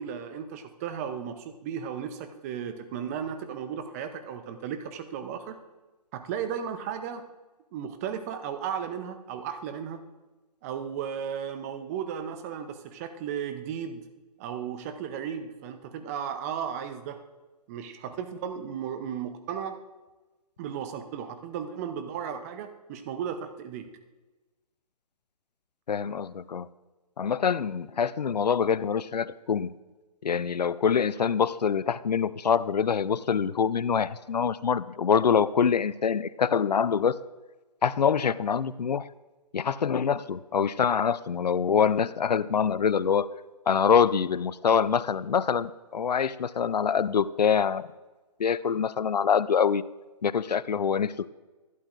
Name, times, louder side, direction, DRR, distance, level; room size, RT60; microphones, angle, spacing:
voice 1, 0.0-5.6 6.1-7.2 7.7-10.0 10.6-14.0 14.4-17.2 17.7-19.8 20.6-23.9, right 8 dB, 25° right, 8 dB, 0.6 m, -35 dB
voice 2, 25.9-26.7 27.2-29.7 30.2-37.2 37.8-39.1 39.5-43.3 43.7-47.9 48.4-49.8 50.2-51.3, left 7 dB, 85° left, 18 dB, 0.4 m, -25 dB
12.0 x 11.0 x 2.5 m, 1.2 s
figure-of-eight pair, 140°, 21 cm